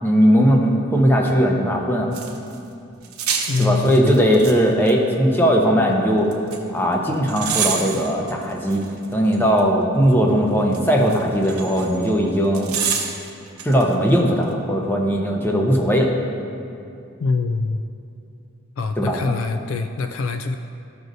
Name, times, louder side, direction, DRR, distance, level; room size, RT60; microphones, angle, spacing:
voice 1, 0.0-2.1 3.6-6.3 6.7-8.8 9.1-12.7 13.6-16.1 19.0-19.4, equal, 10° left, 0 dB, 0.7 m, -18 dB
sound 1, 2.1-2.6 3.0-4.5 4.9-5.0 6.3-6.6 7.3-9.6 10.7-12.1 12.5-13.8 14.1-14.2, right 7 dB, 80° right, 0.9 m, -27 dB
voice 2, 3.5-4.2 17.2-17.8 18.8-20.5, left 3 dB, 60° left, 7 dB, 0.3 m, -24 dB
13.5 x 6.2 x 2.6 m, 2.6 s
head